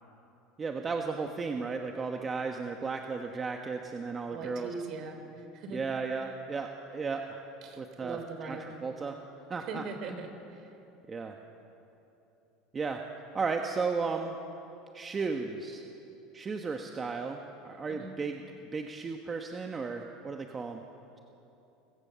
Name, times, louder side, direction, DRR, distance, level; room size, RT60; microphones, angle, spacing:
voice 1, 0.6-4.7 5.7-7.5 7.8-9.2 9.5-9.8 11.1-11.4 12.7-13.0 13.3-14.4 14.9-15.8 16.3-17.4 17.6-18.4 18.7-20.8, right 4 dB, 25° right, 4 dB, 1.3 m, -34 dB
voice 2, 4.3-5.8 7.6-8.7 9.7-10.7 17.9-18.1, right 4 dB, 50° right, 7 dB, 3.4 m, -41 dB
29.0 x 16.5 x 7.0 m, 2.9 s
supercardioid pair, 120°, 0 cm